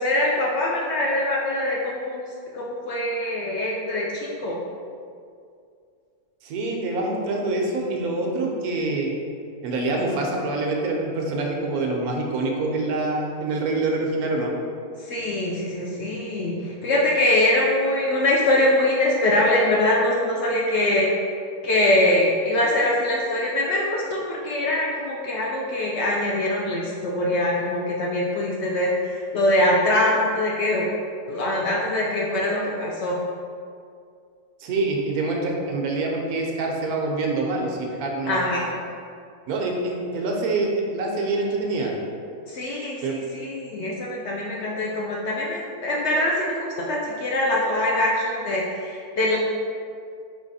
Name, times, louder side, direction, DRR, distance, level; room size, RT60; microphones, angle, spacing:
voice 1, 0.0-2.2 2.5-4.6 15.0-21.1 21.6-30.9 31.3-33.2 38.3-38.7 42.5-49.4, left 1 dB, 65° left, -4 dB, 0.7 m, -23 dB
voice 2, 6.4-9.1 9.6-14.5 34.6-38.5 39.5-41.9 43.0-43.2, right 2 dB, 85° right, 0 dB, 1.2 m, -25 dB
4.1 x 2.9 x 4.0 m, 2.3 s
omnidirectional pair, 1.6 m